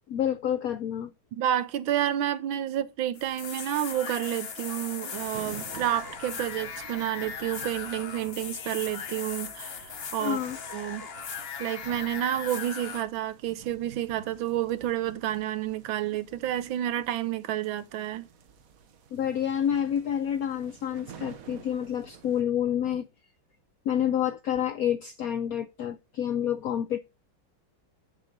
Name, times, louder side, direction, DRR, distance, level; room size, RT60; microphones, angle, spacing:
voice 1, 0.1-1.1 10.2-10.6 19.1-23.1 23.9-27.0, left 9 dB, 75° left, 0.8 m, -28 dB
voice 2, 1.3-10.4 10.7-11.1 11.6-18.3, right 12 dB, 80° right, 1.6 m, -30 dB
sound 1, 3.1-13.0, left 6 dB, 45° left, 0.8 m, -38 dB
sound 2, 5.1-22.4, right 7 dB, 55° right, 1.1 m, -51 dB
8.5 x 6.7 x 3.8 m
omnidirectional pair, 2.1 m